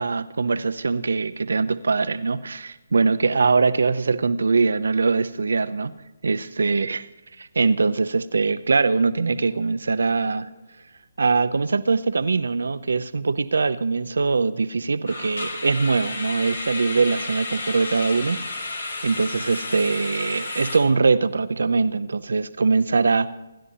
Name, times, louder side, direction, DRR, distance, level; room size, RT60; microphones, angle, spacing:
voice 1, 0.0-5.9 6.2-7.1 7.4-10.5 11.2-23.3, right 4 dB, 65° right, 14 dB, 0.7 m, -22 dB
sound 1, 9.1-9.2 9.4-9.6 10.1-10.2 15.1-20.8, left 2 dB, 75° left, 3.1 m, -32 dB
27.0 x 12.0 x 2.9 m, 1.0 s
figure-of-eight pair, 140°, 0 cm